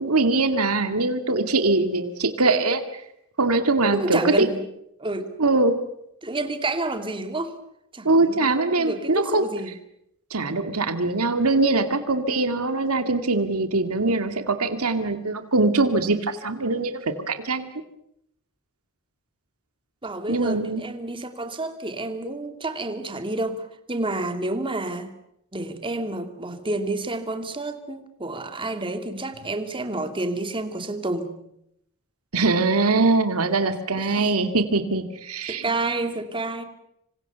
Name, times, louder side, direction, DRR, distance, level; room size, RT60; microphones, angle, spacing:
voice 1, 0.0-2.8 3.4-4.5 5.4-5.7 8.0-9.4 10.3-17.0 17.3-17.7 20.3-20.8 32.3-35.6, right 3 dB, 85° right, 8 dB, 2.2 m, -22 dB
voice 2, 3.9-4.6 5.0-5.3 6.2-7.5 7.9-8.5 8.8-9.7 20.0-25.1 25.5-31.3 34.0-34.3 35.5-36.6, right 2 dB, 25° right, 7 dB, 2.5 m, -29 dB
27.0 x 25.5 x 6.9 m, 0.78 s
head